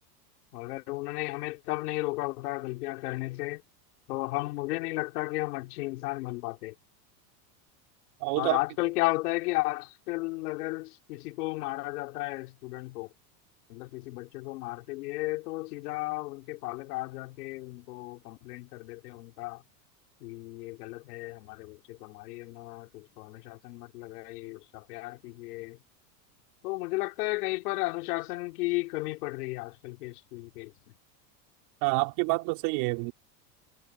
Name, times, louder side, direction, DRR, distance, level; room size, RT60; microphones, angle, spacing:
voice 1, 0.5-3.6 4.1-6.7 8.4-13.1 13.7-19.6 20.2-25.8 26.6-30.7, left 22 dB, 75° left, 3.8 m, -34 dB
voice 2, 8.2-8.6 31.8-33.1, right 27 dB, 55° right, 3.6 m, -27 dB
supercardioid pair, 150°, 47 cm